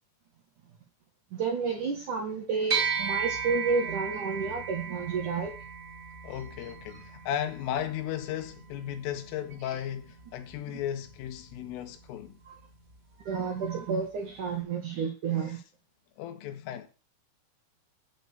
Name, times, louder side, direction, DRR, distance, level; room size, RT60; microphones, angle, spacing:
voice 1, 1.3-5.5 9.6-9.8 12.5-12.6 13.2-15.6, right 5 dB, 60° right, 2.2 m, -31 dB
sound 1, 2.7-12.3, right 6 dB, 20° right, 2.2 m, -37 dB
voice 2, 6.2-12.3 16.2-16.9, left 10 dB, 80° left, 4.0 m, -35 dB
9.3 x 8.8 x 6.7 m
omnidirectional pair, 5.8 m